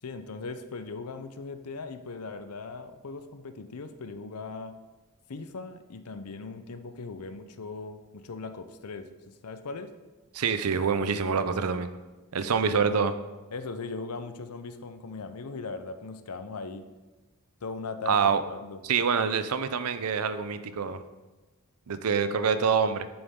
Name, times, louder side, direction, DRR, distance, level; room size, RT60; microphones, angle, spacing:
voice 1, 0.0-4.8 5.3-9.9 12.4-12.6 13.5-16.9 17.6-18.8, left 4 dB, 85° left, 10 dB, 0.7 m, -39 dB
voice 2, 10.3-11.9 12.3-13.1 18.1-18.4 18.8-21.0 21.9-23.1, right 6 dB, 80° right, 11 dB, 0.6 m, -26 dB
8.8 x 7.0 x 3.7 m, 1.2 s
head